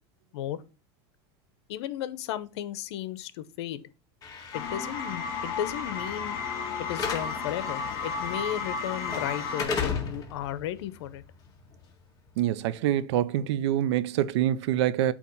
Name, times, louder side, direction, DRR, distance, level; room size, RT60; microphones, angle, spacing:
voice 1, 1.7-3.8 4.5-6.4 6.8-11.2, left 12 dB, 80° left, 0.8 m, -34 dB
Slam / Alarm, 4.2-12.3, left 5 dB, 25° left, 1.7 m, -37 dB
sound 1, 4.5-9.6, left 5 dB, 55° left, 1.8 m, -33 dB
voice 2, 12.4-15.1, right 12 dB, 80° right, 0.6 m, -25 dB
8.4 x 3.0 x 5.4 m
supercardioid pair, 140°, 14 cm